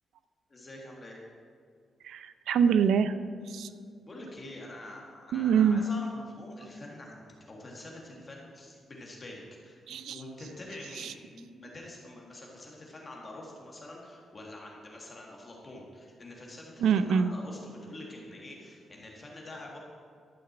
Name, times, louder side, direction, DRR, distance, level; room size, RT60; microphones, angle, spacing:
voice 1, 0.5-1.2 4.0-19.8, left 1 dB, 25° left, -2 dB, 1.5 m, -46 dB
voice 2, 2.0-3.1 3.5-3.7 5.3-5.8 9.9-10.2 16.8-17.3, right 7 dB, 80° right, 12 dB, 0.5 m, -24 dB
12.0 x 5.9 x 7.7 m, 2.2 s
wide cardioid pair, 180°, 0 cm